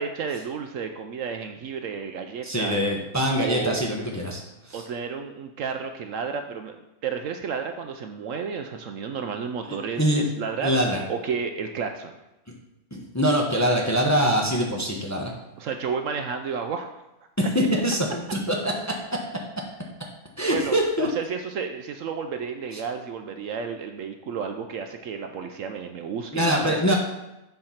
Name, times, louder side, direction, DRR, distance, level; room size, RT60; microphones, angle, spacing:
voice 1, 0.0-2.8 3.4-3.8 4.7-6.8 7.0-10.8 11.1-12.1 15.6-17.0 20.5-26.8, right 6 dB, 65° right, 6 dB, 0.9 m, -32 dB
voice 2, 2.4-4.4 4.7-4.8 9.6-10.2 10.6-11.0 12.9-15.3 17.4-19.0 20.4-21.1 22.7-22.8 26.3-26.9, equal, 15° left, -1 dB, 0.8 m, -24 dB
7.6 x 4.4 x 5.7 m, 0.95 s
omnidirectional pair, 1.6 m